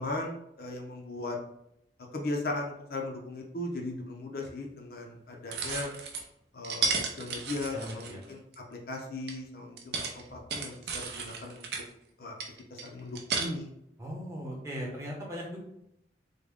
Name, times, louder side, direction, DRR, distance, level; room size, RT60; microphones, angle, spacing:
voice 1, 0.0-1.4 2.1-5.9 6.5-8.4 8.7-11.6 12.2-12.3 12.7-13.7, left 2 dB, 55° left, 1 dB, 0.5 m, -37 dB
sound 1, 4.4-4.5 5.5-6.2 6.6-8.5 9.3-9.4 9.8-11.9 12.4-13.4, right 4 dB, 60° right, 0.5 m, -33 dB
voice 2, 7.7-8.2 14.0-15.6, equal, 15° right, -3 dB, 0.8 m, -38 dB
3.5 x 2.1 x 3.4 m, 0.80 s
head